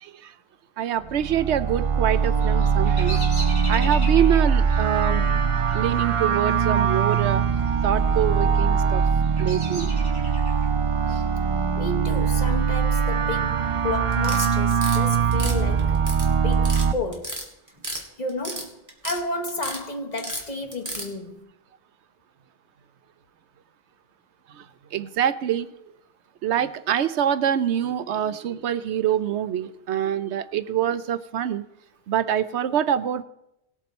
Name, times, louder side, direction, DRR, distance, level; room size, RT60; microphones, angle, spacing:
voice 1, 0.0-0.3 0.8-3.2 3.7-5.3 5.7-7.4 7.8-9.0 9.4-9.9 11.1-11.2 24.5-24.6 24.9-25.7 26.4-31.6 32.1-33.2, right 10 dB, 75° right, 0.9 m, -25 dB
sound 1, 1.0-16.9, right 6 dB, 40° right, 0.5 m, -22 dB
Bird vocalization bird call bird song, 2.2-7.2 7.5-8.1 8.7-10.7, equal, 85° left, 4.3 m, -39 dB
voice 2, 11.8-16.0 16.4-17.4 18.2-21.5, left 3 dB, 40° left, 1.1 m, -32 dB
sound 2, 14.1-15.0 15.3-16.3 16.5-16.9 17.1-18.0 18.3-19.2 19.5-19.8 20.2-21.1, right 1 dB, 15° right, 2.3 m, -33 dB
19.5 x 7.2 x 4.2 m
omnidirectional pair, 1.2 m